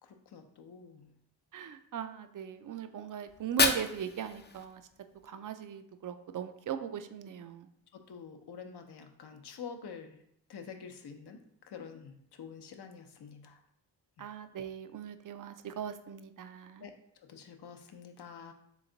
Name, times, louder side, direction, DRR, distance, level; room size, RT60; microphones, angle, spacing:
voice 1, 0.0-1.1 7.9-10.2 10.5-11.4 11.6-13.6 14.2-14.3 16.8-18.5, left 6 dB, 65° left, 5 dB, 0.7 m, -48 dB
voice 2, 1.5-4.8 5.2-7.7 14.2-16.8, right 9 dB, 45° right, 9 dB, 0.5 m, -39 dB
Fire, 3.3-5.3, left 4 dB, 25° left, 0.5 m, -32 dB
3.5 x 3.1 x 3.8 m, 0.73 s
cardioid pair, 40°, 44 cm